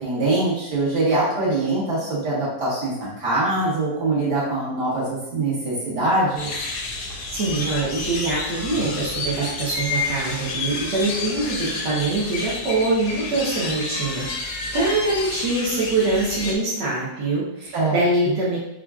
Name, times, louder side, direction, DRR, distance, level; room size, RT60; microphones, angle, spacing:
voice 1, 0.0-6.5 17.7-18.0 18.3-18.4, right 2 dB, 70° right, -8 dB, 2.0 m, -23 dB
sound 1, 6.4-16.6, left 3 dB, 75° left, 1.1 m, -30 dB
voice 2, 7.3-18.6, right 2 dB, 85° right, -8 dB, 1.6 m, -24 dB
5.5 x 2.4 x 2.4 m, 0.90 s
omnidirectional pair, 1.9 m